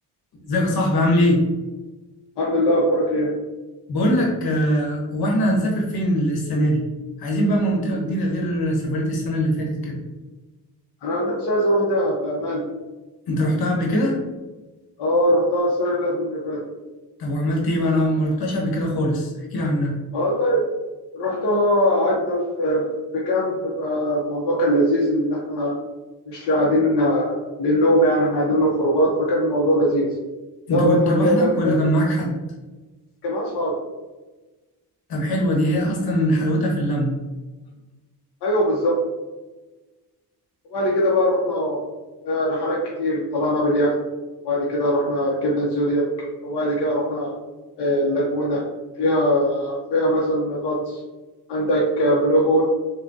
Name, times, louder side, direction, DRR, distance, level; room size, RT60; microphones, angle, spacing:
voice 1, 0.5-1.4 3.9-6.8 7.2-10.0 13.3-14.2 17.2-20.0 30.7-32.3 35.1-37.1, equal, 65° left, -1 dB, 1.0 m, -21 dB
voice 2, 2.4-3.3 11.0-12.6 15.0-16.6 20.1-20.6 21.1-22.8 23.1-25.7 26.3-30.1 30.7-31.8 33.2-33.8 38.4-39.0 40.7-41.8 42.2-43.9 44.4-46.0 46.4-47.3 47.8-48.6 49.0-51.0 51.5-52.6, equal, 85° left, -4 dB, 0.7 m, -21 dB
3.5 x 2.2 x 2.5 m, 1.2 s
cardioid pair, 75°, 40 cm